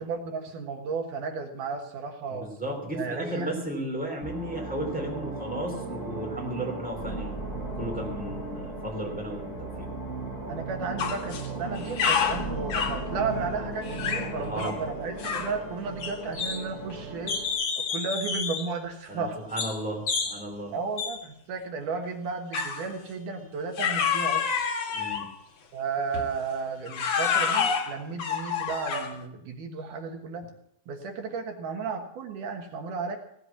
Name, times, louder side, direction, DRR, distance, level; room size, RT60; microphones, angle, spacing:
voice 1, 0.0-2.5 2.9-3.9 10.5-17.4 17.8-19.4 20.7-24.5 25.7-30.5 30.9-33.2, right 4 dB, 80° right, 4 dB, 3.0 m, -34 dB
voice 2, 2.3-7.4 7.7-9.9 14.2-14.8 19.1-20.7 24.9-25.3, right 1 dB, 5° right, 0 dB, 2.8 m, -34 dB
sound 1, 4.2-17.5, right 2 dB, 35° right, 5.0 m, -36 dB
sound 2, 11.0-11.5 11.8-13.0 13.9-14.3 14.6-14.8 15.2-15.6 16.0-16.9 17.3-18.7 19.6-19.8 20.1-20.4 21.0-21.2 22.5-22.9 23.8-25.3 26.1-26.3 26.9-29.2, left 6 dB, 60° left, 2.7 m, -28 dB
17.0 x 8.1 x 7.1 m, 0.76 s
omnidirectional pair, 3.6 m